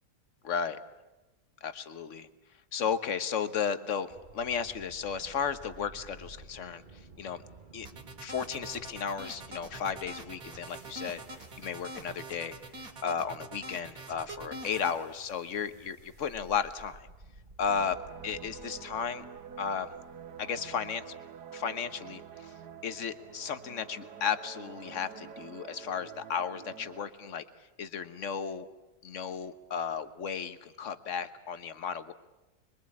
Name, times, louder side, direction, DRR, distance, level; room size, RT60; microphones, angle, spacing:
voice 1, 0.4-0.8 1.6-2.3 2.7-6.8 7.2-7.4 7.7-7.9 8.2-12.6 13.0-17.1 17.6-18.0 18.2-19.2 19.6-19.9 20.4-21.0 21.5-22.5 22.8-27.4 27.8-28.7 29.0-32.1, left 7 dB, 50° left, 11 dB, 1.4 m, -34 dB
sound 1, 4.1-22.2, right 3 dB, 30° right, 1.8 m, -54 dB
sound 2, 7.8-15.0, right 2 dB, 60° right, 3.0 m, -44 dB
sound 3, 17.7-27.1, right 7 dB, 85° right, 1.8 m, -47 dB
26.5 x 22.5 x 8.6 m, 1.0 s
omnidirectional pair, 1.7 m